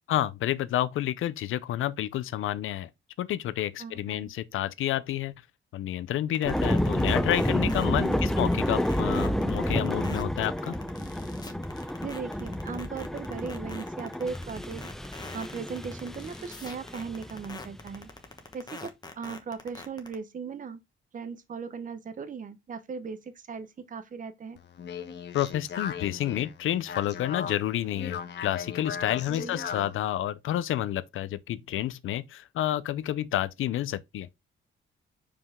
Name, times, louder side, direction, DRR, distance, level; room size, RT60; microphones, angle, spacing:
voice 1, 0.1-2.9 3.2-5.3 5.7-10.7 25.3-34.3, left 12 dB, 85° left, 0.5 m, -30 dB
voice 2, 3.8-4.3 7.9-8.3 12.0-14.9 15.3-18.1 18.5-20.8 21.1-24.6 29.3-29.6, right 5 dB, 40° right, 0.9 m, -38 dB
sound 1, 6.3-20.1, left 3 dB, 20° left, 1.2 m, -43 dB
sound 2, 6.4-18.0, equal, ahead, 0.4 m, -30 dB
Speech, 24.6-30.0, left 7 dB, 60° left, 1.0 m, -38 dB
5.5 x 5.0 x 3.5 m
wide cardioid pair, 135°, 21 cm